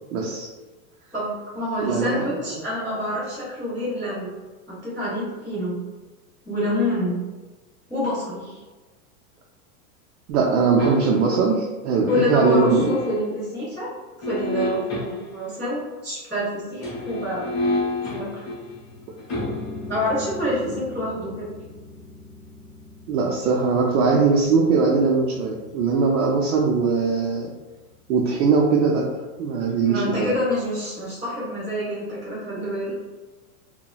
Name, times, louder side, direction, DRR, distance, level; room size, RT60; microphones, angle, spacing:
voice 1, 0.1-0.5 1.8-2.2 10.3-12.9 23.1-27.5 28.1-29.1 29.4-30.3, right 4 dB, 65° right, -2 dB, 0.5 m, -20 dB
voice 2, 1.1-4.3 4.7-5.8 6.4-7.2 7.9-8.6 12.1-13.9 14.2-17.5 18.1-18.5 19.9-21.5 29.8-32.9, left 1 dB, 5° left, -21 dB, 0.4 m, -27 dB
sound 1, 10.8-11.4 12.1-13.2 14.2-15.4 16.7-27.6 27.9-28.0, left 2 dB, 30° left, 0.8 m, -32 dB
2.8 x 2.1 x 2.3 m, 1.2 s
supercardioid pair, 170°, 45 cm